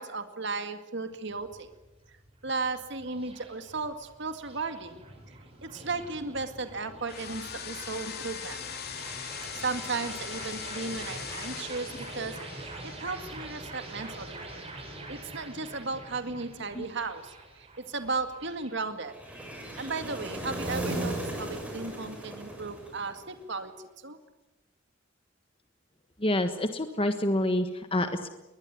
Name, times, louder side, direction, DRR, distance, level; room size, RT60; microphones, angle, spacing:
voice 1, 0.0-1.7 2.4-5.0 5.3-8.6 9.5-14.5 15.1-19.1 19.8-23.7 24.0-24.2, right 3 dB, 60° right, 8 dB, 2.0 m, -35 dB
sound 1, 1.1-20.1, right 2 dB, 30° right, 5.9 m, -45 dB
sound 2, 7.1-15.2, left 7 dB, 55° left, 3.2 m, -41 dB
sound 3, 19.1-23.4, right 1 dB, 5° right, 7.1 m, -36 dB
voice 2, 26.2-28.3, left 1 dB, 30° left, 8 dB, 1.4 m, -28 dB
21.5 x 20.5 x 9.4 m, 1.0 s
head